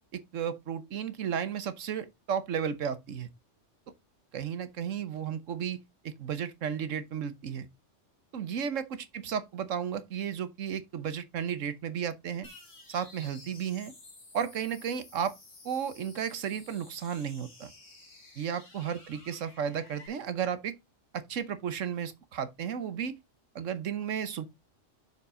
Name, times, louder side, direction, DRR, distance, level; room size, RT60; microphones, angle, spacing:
voice 1, 0.1-3.3 4.3-5.8 6.0-7.7 8.3-12.5 12.9-13.9 14.3-15.3 15.6-17.7 18.4-20.8 21.1-23.2 23.5-24.5, right 8 dB, 85° right, 1.3 m, -33 dB
sound 1, 12.4-20.1, left 2 dB, 75° left, 3.2 m, -53 dB
7.0 x 6.6 x 3.7 m
omnidirectional pair, 1.3 m